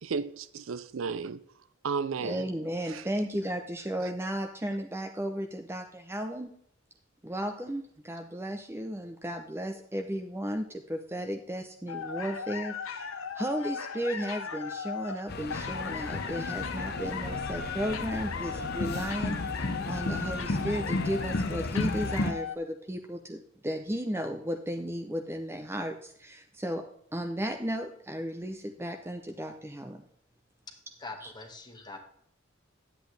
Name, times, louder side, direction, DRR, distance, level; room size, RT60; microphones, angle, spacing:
voice 1, 0.0-1.4 1.8-2.4 2.9-3.0, right 5 dB, 75° right, 0.5 m, -33 dB
voice 2, 2.2-6.5 7.2-26.8 27.1-30.0 31.2-31.3, equal, 10° right, 0.6 m, -34 dB
sound 1, 11.9-22.6, left 5 dB, 90° left, 0.9 m, -37 dB
sound 2, 15.3-22.3, left 2 dB, 55° left, 0.8 m, -33 dB
voice 3, 31.0-32.0, left 3 dB, 20° left, 1.5 m, -43 dB
10.0 x 8.3 x 3.3 m
head